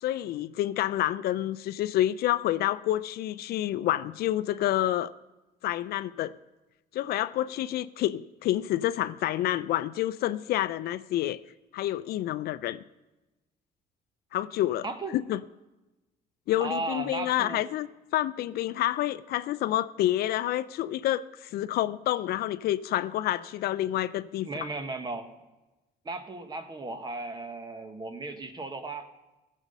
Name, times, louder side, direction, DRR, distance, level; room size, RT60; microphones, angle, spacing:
voice 1, 0.0-5.1 5.6-6.3 6.9-11.4 11.7-12.8 14.3-14.9 15.1-15.4 16.5-24.5, left 13 dB, 65° left, 15 dB, 0.4 m, -28 dB
voice 2, 14.8-15.2 16.6-17.6 24.4-25.3 26.0-29.1, right 3 dB, 25° right, 8 dB, 1.2 m, -35 dB
16.0 x 7.3 x 5.4 m, 1.1 s
cardioid pair, 110°, 17 cm